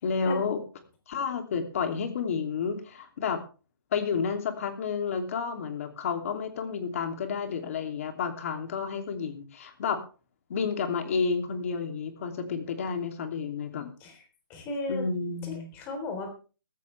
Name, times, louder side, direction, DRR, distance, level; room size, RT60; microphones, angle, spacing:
voice 1, 0.0-0.6 1.1-3.4 3.9-10.0 10.5-13.9 14.9-15.7, left 5 dB, 40° left, 6 dB, 2.9 m, -30 dB
voice 2, 14.5-15.1 15.4-16.3, left 2 dB, 15° left, 5 dB, 3.7 m, -35 dB
16.5 x 15.0 x 3.4 m, 0.36 s
hypercardioid pair, 165°, 12 cm